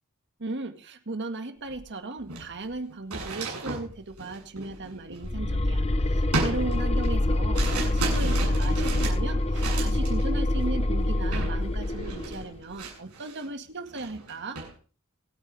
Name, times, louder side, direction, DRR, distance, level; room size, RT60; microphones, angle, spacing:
voice 1, 0.4-5.8 6.1-14.6, right 2 dB, 55° right, 7 dB, 2.0 m, -36 dB
sound 1, 1.7-1.8 2.2-5.8 6.3-10.2 10.5-10.8 11.3-11.6 11.8-13.5 13.8-14.7, right 2 dB, 85° right, 7.8 m, -34 dB
sound 2, 5.2-12.5, left 1 dB, 30° left, 0.8 m, -26 dB
27.0 x 9.2 x 3.5 m, 0.35 s
head